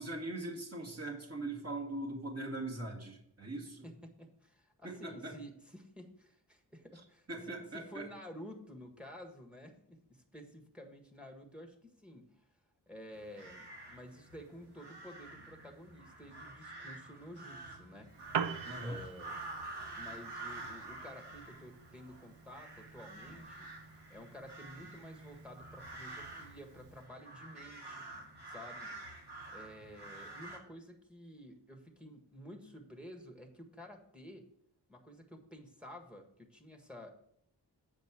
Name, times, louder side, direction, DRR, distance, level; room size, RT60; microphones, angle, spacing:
voice 1, 0.0-3.9 4.8-5.3 7.3-8.1 18.6-19.0, right 2 dB, 35° right, -2 dB, 2.4 m, -41 dB
voice 2, 3.8-12.3 12.9-18.1 18.8-19.4 19.9-23.7 24.1-28.1 28.4-28.9 29.5-34.5 34.9-37.1, equal, ahead, 3 dB, 1.6 m, -51 dB
sound 1, 13.1-30.6, right 2 dB, 70° right, 2.0 m, -48 dB
Piano, 18.1-27.1, right 7 dB, 85° right, 0.7 m, -45 dB
7.7 x 5.3 x 6.2 m, 0.70 s
wide cardioid pair, 65°, 42 cm